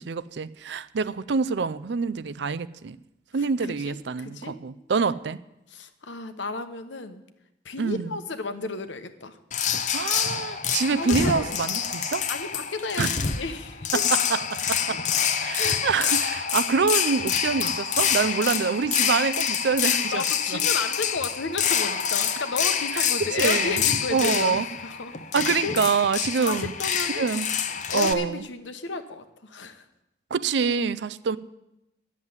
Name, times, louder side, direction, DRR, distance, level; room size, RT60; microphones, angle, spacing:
voice 1, 0.0-3.0 3.3-5.4 7.8-8.1 9.9-12.3 13.0-13.1 13.9-15.0 15.4-20.6 22.9-23.8 24.1-24.7 25.3-26.7 27.2-27.5 27.9-28.5 30.3-31.4, right 5 dB, 70° right, 17 dB, 0.5 m, -26 dB
voice 2, 3.6-4.5 5.7-7.2 7.6-9.4 11.0-11.4 12.3-14.0 15.6-15.9 20.1-25.1 25.6-25.7 26.4-27.3 27.9-29.8, left 3 dB, 80° left, 9 dB, 1.0 m, -33 dB
sound 1, 9.5-28.1, left 8 dB, 40° left, 0.7 m, -26 dB
10.5 x 7.4 x 9.5 m, 0.91 s
head